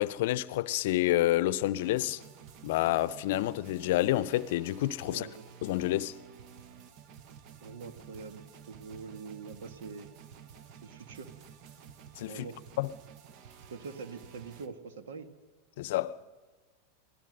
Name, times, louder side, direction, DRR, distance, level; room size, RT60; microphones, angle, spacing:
voice 1, 0.0-2.2 2.6-5.3 5.6-6.1 12.2-12.4 12.8-12.9 15.8-16.2, left 15 dB, 65° left, 0.6 m, -28 dB
sound 1, 1.8-14.7, right 8 dB, 50° right, 1.2 m, -52 dB
voice 2, 5.1-5.5 7.6-10.1 10.8-11.3 12.3-12.6 13.7-15.3, right 5 dB, 75° right, 1.7 m, -44 dB
24.0 x 16.5 x 6.6 m
hypercardioid pair, 100°, 0 cm